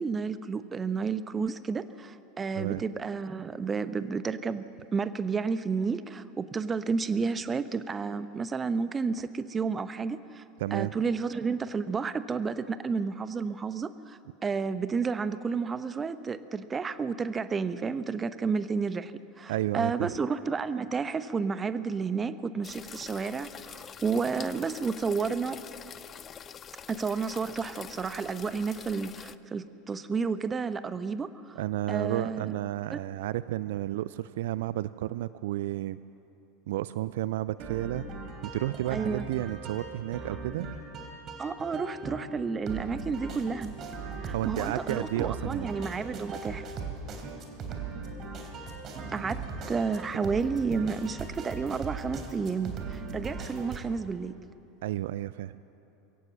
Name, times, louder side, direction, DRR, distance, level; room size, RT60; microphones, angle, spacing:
voice 1, 0.0-4.6 4.9-10.4 10.7-25.7 26.9-31.6 31.9-32.5 32.9-33.0 38.9-39.3 41.4-43.8 44.2-46.7 49.1-54.4, right 5 dB, 25° right, 13 dB, 0.9 m, -31 dB
voice 2, 10.6-10.9 19.5-20.1 31.6-36.0 36.7-38.1 38.4-40.7 44.3-45.7 54.8-55.6, right 15 dB, 65° right, 16 dB, 0.4 m, -32 dB
sound 1, 22.6-29.4, left 8 dB, 30° left, 0.6 m, -45 dB
sound 2, 37.6-53.8, right 4 dB, 40° right, 3.4 m, -39 dB
22.5 x 17.0 x 7.6 m, 2.9 s
figure-of-eight pair, 80°, 0 cm